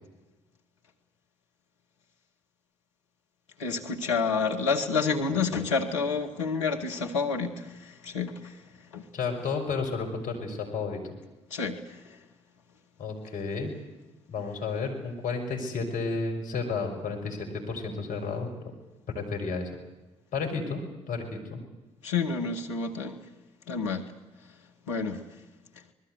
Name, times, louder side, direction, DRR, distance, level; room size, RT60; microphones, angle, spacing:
voice 1, 3.6-8.6 8.9-9.1 11.5-12.2 22.0-23.2 23.7-24.1 24.9-25.2, left 5 dB, 85° left, 3 dB, 1.9 m, -29 dB
voice 2, 9.1-11.1 13.0-13.7 14.3-18.5 19.1-19.7 20.3-21.6, left 4 dB, 60° left, 2 dB, 5.9 m, -32 dB
25.0 x 21.0 x 8.2 m, 1.1 s
hypercardioid pair, 45°, 15 cm